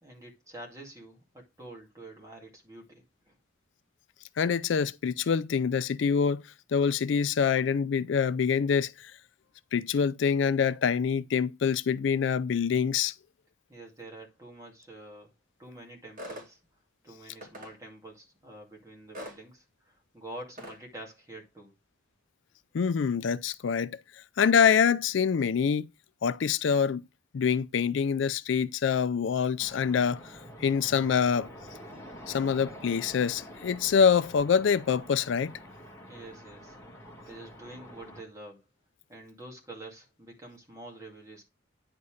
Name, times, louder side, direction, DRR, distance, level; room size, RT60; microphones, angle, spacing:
voice 1, 0.0-3.4 13.7-15.3 15.6-16.6 17.0-21.7 36.1-36.8 37.3-38.6 39.1-41.4, right 1 dB, 15° right, 2.3 m, -47 dB
voice 2, 4.4-6.4 6.7-9.1 9.7-13.1 22.7-25.9 26.2-27.0 27.3-30.2 30.6-31.5 32.3-35.5, left 6 dB, 65° left, 0.4 m, -25 dB
sound 1, 16.2-16.5 17.4-17.7 19.1-19.4 20.6-20.8, equal, 45° right, 2.5 m, -41 dB
sound 2, 29.6-38.2, equal, 15° left, 1.8 m, -47 dB
9.6 x 4.2 x 4.9 m
head